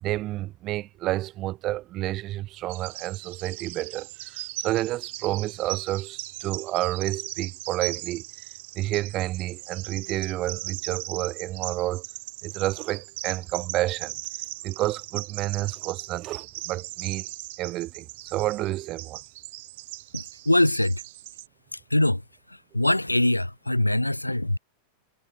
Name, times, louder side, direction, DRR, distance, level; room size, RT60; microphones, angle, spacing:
voice 1, 0.0-8.5 8.7-12.0 12.4-14.2 14.6-17.3 17.6-19.2, right 16 dB, 35° right, 1.3 m, -30 dB
Bird vocalization bird call bird song, 2.7-21.5, right 19 dB, 50° right, 2.9 m, -39 dB
voice 2, 20.1-21.0 21.7-22.2 22.5-24.6, left 1 dB, 85° left, 0.9 m, -23 dB
figure-of-eight pair, 90°, 0 cm